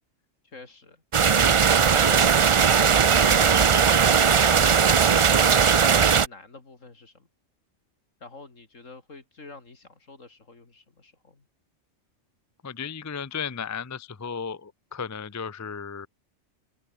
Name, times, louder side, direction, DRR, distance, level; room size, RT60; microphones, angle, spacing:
voice 1, 0.4-1.0 1.7-2.3 6.1-7.3 8.2-11.5, left 3 dB, 80° left, 3.7 m, -46 dB
sound 1, 1.1-6.3, right 6 dB, 50° right, 0.3 m, -18 dB
voice 2, 12.6-16.1, left 6 dB, 20° left, 0.5 m, -34 dB
open air
omnidirectional pair, 1.3 m